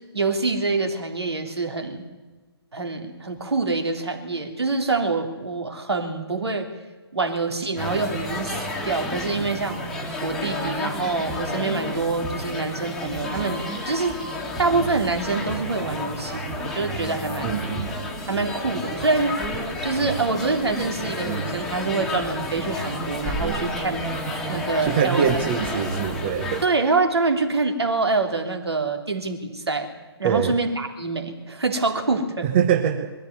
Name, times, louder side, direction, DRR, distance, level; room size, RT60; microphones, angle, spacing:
voice 1, 0.0-2.0 2.7-6.7 7.1-9.8 10.2-14.2 14.6-17.6 18.2-19.4 19.8-24.1 24.5-25.4 26.6-29.9 30.2-32.5, right 3 dB, 70° right, 5 dB, 3.5 m, -25 dB
sound 1, 7.8-26.6, left 1 dB, 5° left, 1.9 m, -30 dB
voice 2, 17.4-17.8 24.8-26.6 30.2-30.6 32.4-33.1, right 8 dB, 25° right, 6 dB, 1.1 m, -23 dB
21.5 x 14.5 x 9.5 m, 1.3 s
figure-of-eight pair, 145°, 14 cm